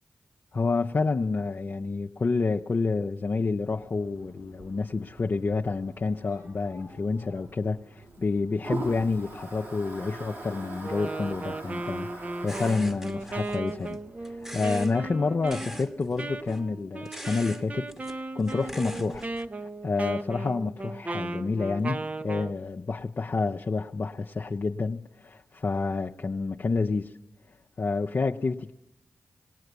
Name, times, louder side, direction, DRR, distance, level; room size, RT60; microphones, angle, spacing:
voice 1, 0.5-19.3 19.8-27.1 27.8-28.7, left 4 dB, 50° left, 0.7 m, -29 dB
Toilet flush, 3.7-15.2, right 2 dB, 70° right, 7.8 m, -42 dB
Wind instrument woodwind instrument, 10.8-22.6, right 2 dB, 30° right, 0.8 m, -36 dB
sound 1, 12.5-14.0 14.2-14.9 15.4-16.6 17.0-17.6 17.9-19.5, equal, 10° right, 1.4 m, -43 dB
20.0 x 18.0 x 8.1 m
cardioid pair, 50°, 5 cm